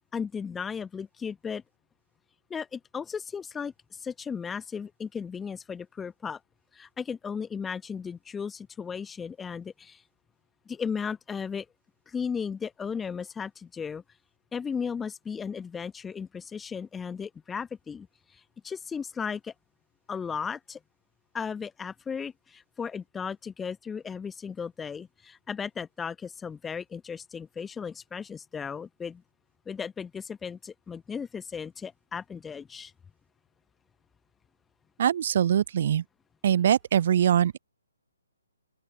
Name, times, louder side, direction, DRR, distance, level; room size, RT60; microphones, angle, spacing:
voice 1, 0.1-1.6 2.5-6.4 6.7-10.0 10.7-11.7 12.1-14.0 14.5-18.1 18.3-19.5 20.1-20.8 21.3-29.2 29.7-32.9, left 6 dB, 10° left, 1.3 m, -35 dB
voice 2, 35.0-36.0 36.4-37.6, right 9 dB, 45° right, 0.6 m, -23 dB
open air
figure-of-eight pair, 135°, 0 cm